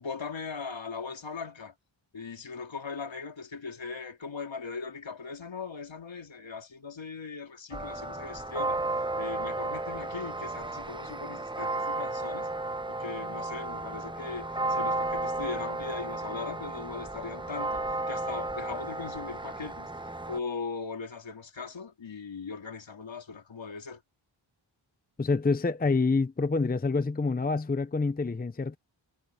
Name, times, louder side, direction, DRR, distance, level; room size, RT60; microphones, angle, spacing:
voice 1, 0.0-1.7 2.1-8.8 9.2-12.5 12.9-24.0, left 5 dB, 65° left, 3.2 m, -39 dB
sound 1, 7.7-20.4, right 2 dB, 10° right, 0.9 m, -33 dB
voice 2, 25.2-28.8, left 3 dB, 20° left, 0.7 m, -27 dB
wide cardioid pair, 75°, 48 cm